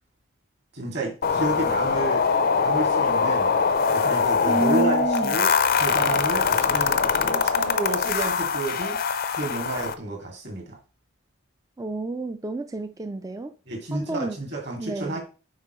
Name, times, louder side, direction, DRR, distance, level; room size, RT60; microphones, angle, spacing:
voice 1, 0.7-2.2 2.6-3.5 3.9-9.0 9.3-10.8 13.7-15.2, right 2 dB, 50° right, 2.3 m, -31 dB
sound 1, 1.2-9.9, left 5 dB, 45° left, 0.5 m, -23 dB
voice 2, 4.5-5.4 11.8-13.5 13.9-14.4 14.8-15.2, right 2 dB, 15° right, 0.3 m, -29 dB
9.4 x 4.5 x 3.1 m
head